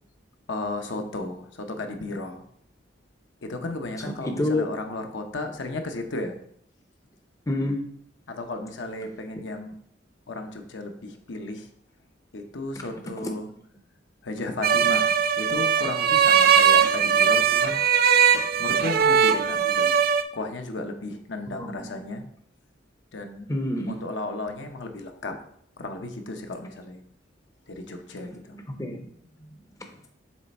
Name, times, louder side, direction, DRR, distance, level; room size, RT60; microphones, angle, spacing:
voice 1, 0.5-2.4 3.4-6.4 8.3-9.8 10.3-11.7 12.3-13.5 14.2-17.8 18.6-20.0 20.3-22.3 23.1-23.5 23.9-25.4 25.8-27.0 27.7-28.6, left 2 dB, 75° left, 5 dB, 0.8 m, -34 dB
voice 2, 4.4-4.7 7.5-7.8 13.2-13.3 21.6-22.0 23.5-24.0 28.7-29.0 29.4-29.5, left 1 dB, 15° left, 4 dB, 0.6 m, -27 dB
sound 1, 14.6-20.2, right 7 dB, 50° right, 0.4 m, -20 dB
7.4 x 3.3 x 4.1 m, 0.67 s
head